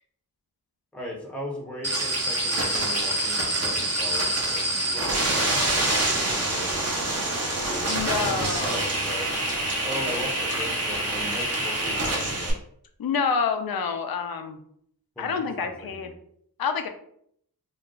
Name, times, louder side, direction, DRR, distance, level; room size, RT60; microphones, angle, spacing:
voice 1, 0.9-5.4 5.7-9.3 9.8-12.6 15.2-16.1, equal, 5° left, -2 dB, 0.7 m, -38 dB
sound 1, 1.8-12.5, right 1 dB, 40° right, 0.8 m, -26 dB
voice 2, 7.9-8.9 13.0-14.6 15.2-16.1 16.6-16.9, left 5 dB, 70° left, 6 dB, 0.5 m, -28 dB
2.5 x 2.2 x 3.7 m, 0.67 s
wide cardioid pair, 100°, 37 cm